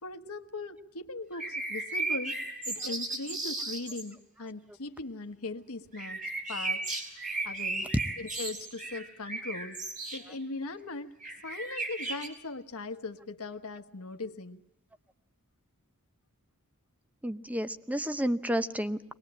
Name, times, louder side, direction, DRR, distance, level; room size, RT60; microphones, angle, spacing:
voice 1, 0.0-2.4 2.6-6.2 6.5-7.9 8.2-9.8 10.1-11.2 11.4-14.6, left 3 dB, 70° left, 6 dB, 1.3 m, -39 dB
sound 1, 1.3-4.0 5.9-10.2 11.2-12.3, right 2 dB, 35° right, 4.5 m, -35 dB
voice 2, 17.2-19.1, equal, 5° right, 12 dB, 0.8 m, -31 dB
23.0 x 20.0 x 8.7 m, 0.88 s
head